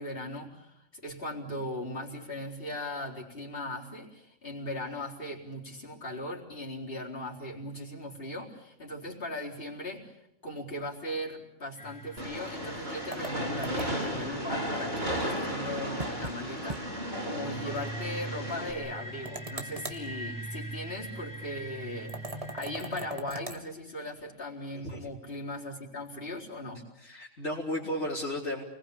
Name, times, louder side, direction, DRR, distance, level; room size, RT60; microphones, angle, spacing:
voice 1, 0.0-10.1 10.4-26.9, left 1 dB, 50° left, -2 dB, 4.4 m, -38 dB
sound 1, 11.8-23.2, right 1 dB, 15° left, 2.4 m, -43 dB
Train, 12.2-18.7, equal, 55° right, 7.7 m, -34 dB
Touchpad clicking, 13.1-14.1 16.0-16.4 16.7-16.8 17.2-17.3 19.3-20.0 22.1-23.6, right 2 dB, 30° right, 2.0 m, -39 dB
voice 2, 24.7-25.1 27.0-28.6, left 1 dB, 65° left, -4 dB, 3.7 m, -34 dB
29.0 x 20.5 x 8.6 m, 0.83 s
omnidirectional pair, 1.3 m